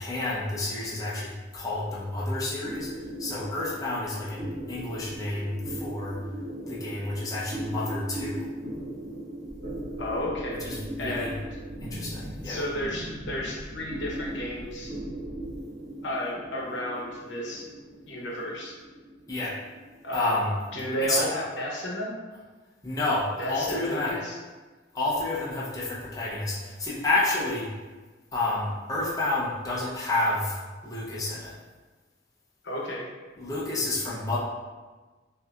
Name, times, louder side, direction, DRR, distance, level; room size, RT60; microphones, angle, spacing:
voice 1, 0.0-2.9 3.2-6.2 6.7-8.5 10.6-11.3 11.8-12.6 19.3-19.6 20.1-20.6 21.0-21.3 22.8-24.1 24.9-27.7 28.3-30.6 30.8-31.5 33.4-34.4, left 2 dB, 20° left, -6 dB, 0.7 m, -29 dB
sound 1, 2.6-21.4, right 1 dB, 80° right, 1.2 m, -39 dB
sound 2, 9.4-15.6, equal, 55° right, 0.8 m, -45 dB
voice 2, 10.0-10.6 11.0-11.4 12.4-15.0 16.0-17.7 18.1-18.7 20.0-20.4 20.7-22.1 23.4-24.4 32.6-33.1, equal, 70° left, -3 dB, 0.9 m, -32 dB
6.0 x 2.7 x 2.4 m, 1.3 s
head